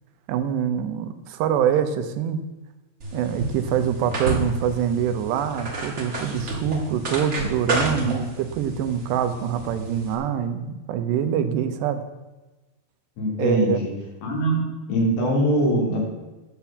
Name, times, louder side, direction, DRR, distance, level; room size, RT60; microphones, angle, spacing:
voice 1, 0.3-2.4 3.1-12.0 13.4-13.8, right 8 dB, 85° right, 9 dB, 3.0 m, -25 dB
sound 1, 3.0-10.1, right 2 dB, 60° right, 0.7 m, -31 dB
voice 2, 7.7-8.2 13.2-13.9 14.2-14.6 14.9-16.0, equal, 80° left, -3 dB, 5.6 m, -23 dB
11.0 x 7.4 x 7.2 m, 1.1 s
omnidirectional pair, 4.8 m